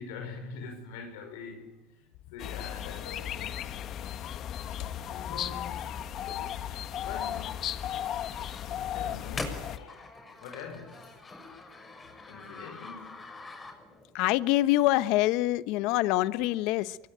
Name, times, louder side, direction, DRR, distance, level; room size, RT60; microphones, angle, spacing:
voice 1, 0.0-3.6 5.1-7.5 8.4-10.1 10.4-11.1 12.3-13.1, left 5 dB, 85° left, 5.1 m, -44 dB
sound 1, 2.4-9.8, left 10 dB, 45° left, 1.5 m, -35 dB
sound 2, 5.3-14.1, left 3 dB, 20° left, 6.3 m, -45 dB
voice 2, 14.1-17.0, left 16 dB, 70° left, 1.1 m, -25 dB
26.0 x 23.5 x 9.3 m
supercardioid pair, 125°, 0 cm